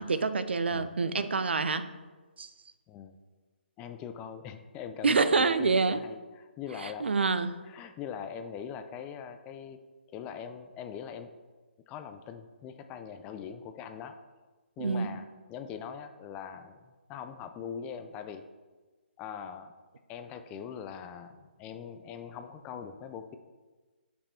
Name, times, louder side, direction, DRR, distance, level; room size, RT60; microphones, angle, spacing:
voice 1, 0.0-1.9 2.4-2.5 5.0-6.0 6.8-7.5 14.8-15.1, right 4 dB, 75° right, 11 dB, 0.5 m, -27 dB
voice 2, 3.8-7.3 7.7-9.8 10.1-11.3 11.9-14.2 14.8-16.8 17.1-18.4 19.2-19.7 20.1-23.4, left 7 dB, 20° left, 8 dB, 0.4 m, -42 dB
6.6 x 5.5 x 4.4 m, 1.3 s
figure-of-eight pair, 145°, 6 cm